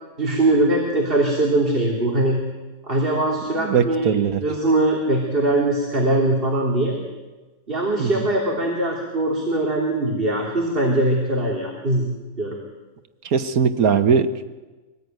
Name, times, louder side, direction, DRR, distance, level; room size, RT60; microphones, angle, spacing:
voice 1, 0.2-2.4 2.9-4.1 4.4-7.0 7.7-12.1 12.4-12.6, right 1 dB, 40° right, -1 dB, 3.3 m, -21 dB
voice 2, 3.6-4.4 8.0-8.2 13.2-14.5, right 6 dB, 80° right, 10 dB, 1.6 m, -20 dB
24.5 x 19.5 x 9.3 m, 1.2 s
omnidirectional pair, 1.5 m